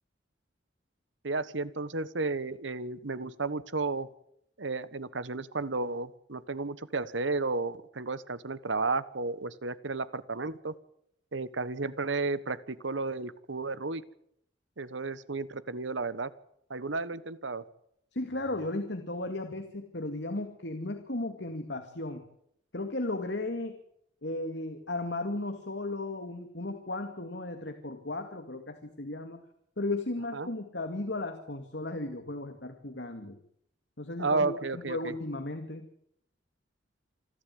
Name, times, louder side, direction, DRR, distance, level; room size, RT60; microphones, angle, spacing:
voice 1, 1.2-4.1 4.6-10.7 11.3-14.0 14.8-16.3 16.7-17.6 30.3-30.5 34.2-35.1, right 3 dB, 90° right, 16 dB, 1.3 m, -33 dB
voice 2, 18.1-22.2 22.7-23.8 24.2-29.4 29.8-33.4 34.0-35.9, left 2 dB, 70° left, 6 dB, 2.2 m, -35 dB
27.5 x 13.0 x 9.3 m, 0.73 s
head